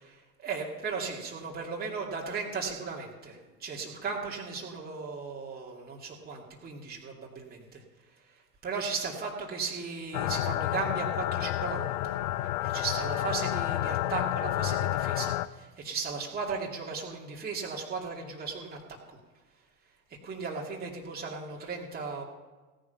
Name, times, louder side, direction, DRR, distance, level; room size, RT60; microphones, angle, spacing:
voice 1, 0.4-12.2 12.6-19.2 19.5-20.0 20.2-22.2, right 4 dB, 20° right, -2 dB, 2.5 m, -36 dB
sound 1, 10.1-15.5, left 14 dB, 30° left, 0.4 m, -30 dB
16.5 x 10.0 x 5.8 m, 1.3 s
figure-of-eight pair, 90°, 49 cm